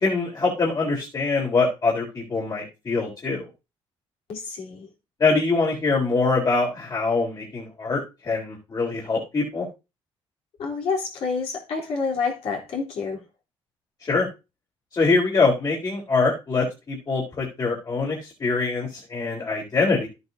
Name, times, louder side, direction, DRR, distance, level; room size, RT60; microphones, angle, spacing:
voice 1, 0.0-3.5 5.2-9.7 14.0-14.3 14.9-20.1, left 3 dB, 40° left, 3.7 m, -24 dB
voice 2, 4.3-4.9 10.6-13.2, left 5 dB, 70° left, 3.7 m, -28 dB
12.0 x 9.5 x 2.8 m
cardioid pair, 85°, 11 cm